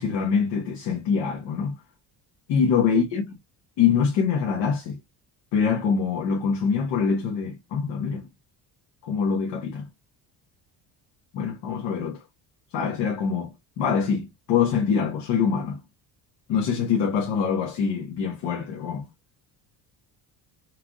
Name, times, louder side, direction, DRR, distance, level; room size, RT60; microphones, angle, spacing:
voice 1, 0.0-1.7 2.5-3.2 3.8-5.0 5.5-8.3 9.0-9.9 11.3-12.2 12.7-15.8 16.5-19.1, left 6 dB, 85° left, 1.4 m, -24 dB
4.6 x 3.4 x 2.3 m
cardioid pair, 160°, 42 cm